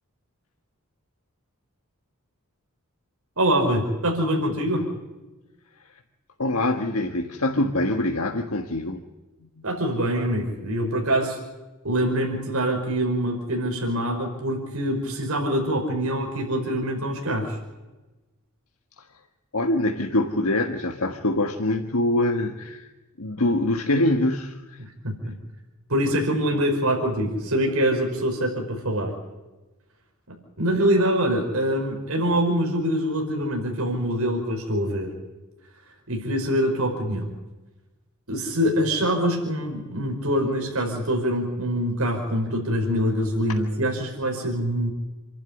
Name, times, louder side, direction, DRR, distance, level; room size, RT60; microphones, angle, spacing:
voice 1, 3.4-4.8 9.6-11.4 11.8-17.6 24.8-25.4 25.9-29.1 30.3-35.1 35.9-37.3 38.3-44.9, equal, 80° right, 1 dB, 5.2 m, -24 dB
voice 2, 6.4-9.0 19.0-19.1 19.5-22.9 23.2-24.8, left 1 dB, 85° left, 4 dB, 1.6 m, -24 dB
28.0 x 12.0 x 9.9 m, 1.1 s
head